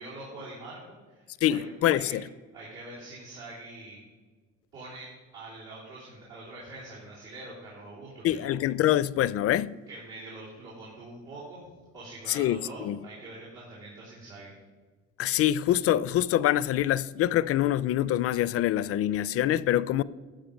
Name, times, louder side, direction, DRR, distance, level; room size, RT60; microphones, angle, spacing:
voice 1, 0.0-1.6 1.9-2.1 2.5-4.0 4.7-8.5 9.9-11.6 11.9-14.5, right 2 dB, 85° right, 3.7 m, -44 dB
voice 2, 1.4-2.2 8.2-9.8 12.3-13.0 15.2-20.0, left 12 dB, 50° left, 0.4 m, -25 dB
11.5 x 7.3 x 5.2 m
cardioid pair, 95°, 29 cm